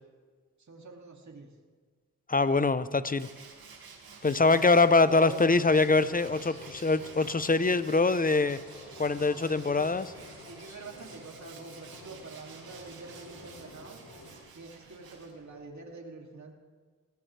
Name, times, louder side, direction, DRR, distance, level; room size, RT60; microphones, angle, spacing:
voice 1, 0.7-1.5 4.2-5.4 9.0-9.9 10.4-14.0 14.6-16.5, right 3 dB, 50° right, 0 dB, 2.8 m, -46 dB
voice 2, 2.3-3.3 4.2-8.6 9.0-10.1, left 3 dB, 25° left, 14 dB, 0.8 m, -24 dB
Tools, 3.2-15.7, right 5 dB, 80° right, 2.3 m, -51 dB
sound 1, 5.3-14.4, left 2 dB, 80° left, 6.0 m, -50 dB
19.0 x 17.0 x 3.4 m, 1.5 s
supercardioid pair, 45°, 36 cm